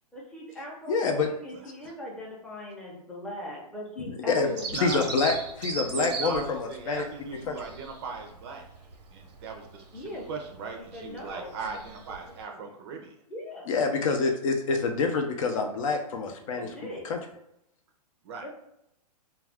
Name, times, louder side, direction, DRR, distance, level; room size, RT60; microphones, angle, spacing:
voice 1, 0.1-4.6 5.0-5.1 9.9-10.3 10.8-12.8 13.3-13.7 16.5-17.0 18.4-18.5, left 1 dB, 5° left, -4 dB, 0.6 m, -41 dB
voice 2, 0.9-1.3 4.3-4.5 4.8-7.0 7.5-7.6 13.7-16.7 17.1-17.2, left 4 dB, 55° left, 4 dB, 0.5 m, -26 dB
Bird vocalization bird call bird song, 4.6-12.4, right 4 dB, 85° right, 0.7 m, -39 dB
voice 3, 4.7-5.0 5.9-8.7 9.1-9.8 10.3-13.1 18.2-18.4, right 5 dB, 40° right, 3 dB, 0.5 m, -38 dB
2.3 x 2.2 x 3.4 m, 0.82 s
hypercardioid pair, 140°, 21 cm